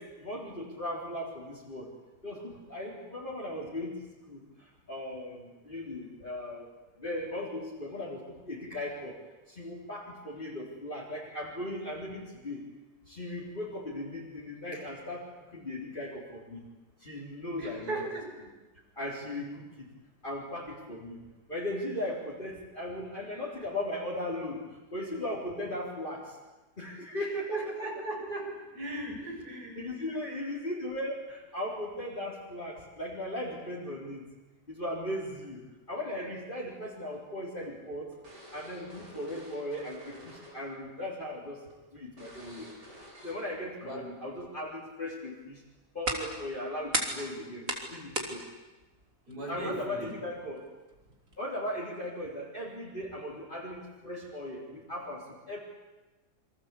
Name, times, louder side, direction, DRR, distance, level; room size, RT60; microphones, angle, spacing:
voice 1, 0.0-1.9 2.2-3.9 4.3-6.7 7.0-9.2 9.5-12.6 13.1-16.7 17.0-18.0 19.0-19.9 20.2-21.2 21.5-26.4 26.8-27.7 29.8-34.3 34.7-38.1 38.5-41.6 41.9-42.7 43.2-45.6 45.9-48.5 49.5-50.7 51.4-55.6, left 1 dB, 30° left, -4 dB, 4.2 m, -38 dB
voice 2, 17.6-18.3 27.2-29.8 30.1-30.3 43.8-44.1 49.3-50.1, right 2 dB, 70° right, 0 dB, 7.4 m, -37 dB
sound 1, 37.1-40.8 41.0-41.3 41.7-41.8 42.2-43.6, equal, 85° right, 6.8 m, -51 dB
sound 2, 45.4-51.4, right 2 dB, 50° right, 4.0 m, -38 dB
28.5 x 24.5 x 8.4 m, 1.2 s
omnidirectional pair, 1.8 m